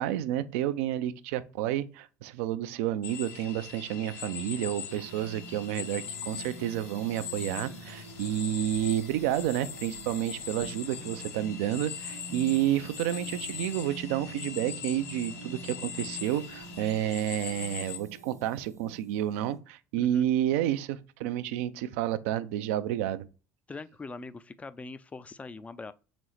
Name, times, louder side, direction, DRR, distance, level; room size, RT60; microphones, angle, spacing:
voice 1, 0.0-23.3, right 12 dB, 60° right, 0.4 m, -30 dB
sound 1, 3.0-18.0, left 8 dB, 60° left, 0.7 m, -41 dB
sound 2, 4.9-19.6, right 2 dB, 85° right, 0.9 m, -46 dB
voice 2, 20.0-20.3 23.7-25.9, left 3 dB, 15° left, 0.4 m, -42 dB
4.1 x 3.7 x 3.1 m
figure-of-eight pair, 60°, 8 cm